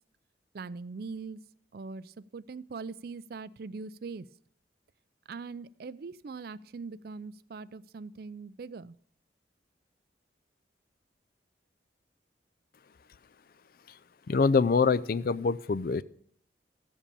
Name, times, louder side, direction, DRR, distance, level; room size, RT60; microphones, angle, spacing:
voice 1, 0.5-1.4 1.7-4.3 5.3-9.0, right 4 dB, 55° right, 18 dB, 0.4 m, -41 dB
voice 2, 14.3-16.0, left 4 dB, 50° left, 16 dB, 0.4 m, -25 dB
14.5 x 7.4 x 6.9 m, 0.62 s
head